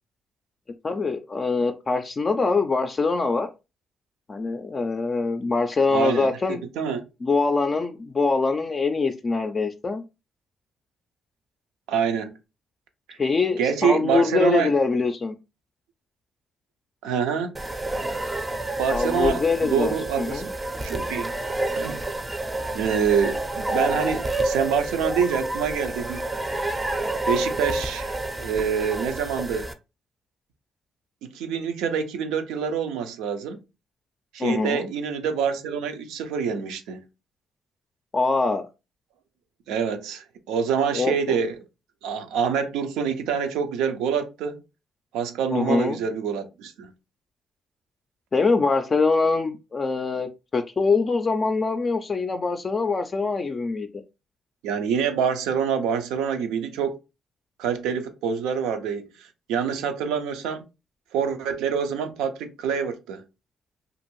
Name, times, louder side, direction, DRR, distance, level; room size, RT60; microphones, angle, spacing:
voice 1, 0.8-3.5 4.3-6.6 7.2-10.0 13.2-15.3 18.9-20.5 34.4-34.9 38.1-38.7 40.9-41.4 45.5-46.0 48.3-54.0, left 4 dB, 35° left, 0.3 m, -24 dB
voice 2, 5.9-6.3 6.8-7.0 11.9-12.3 13.1-13.2 13.6-14.7 17.0-17.6 18.8-20.5 20.8-21.3 21.8-22.0 22.7-26.2 27.3-29.7 31.2-33.6 34.3-37.0 39.7-41.6 42.0-44.6 45.1-46.9 54.6-57.0 57.6-60.6 61.1-63.2, right 7 dB, 90° right, 0.4 m, -26 dB
sound 1, 17.6-29.7, right 2 dB, 20° right, 0.5 m, -29 dB
2.5 x 2.4 x 3.0 m
supercardioid pair, 75°, 0 cm